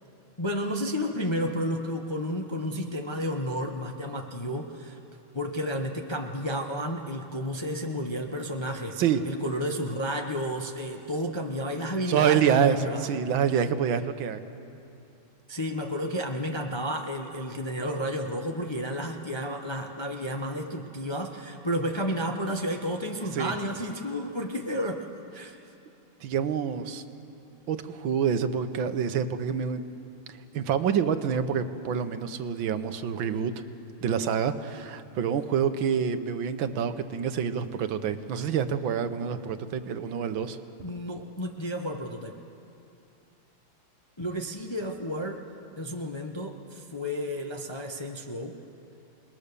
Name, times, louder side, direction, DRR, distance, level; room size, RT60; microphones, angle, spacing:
voice 1, 0.4-5.0 5.3-13.1 15.5-25.1 25.3-25.6 40.8-42.4 44.2-45.4 45.8-48.6, equal, 20° left, 2 dB, 0.8 m, -32 dB
voice 2, 12.1-14.4 23.3-23.5 26.2-27.0 27.7-29.8 30.3-33.5 34.0-40.6, right 7 dB, 75° right, 10 dB, 1.7 m, -27 dB
29.0 x 20.5 x 6.8 m, 2.7 s
omnidirectional pair, 2.2 m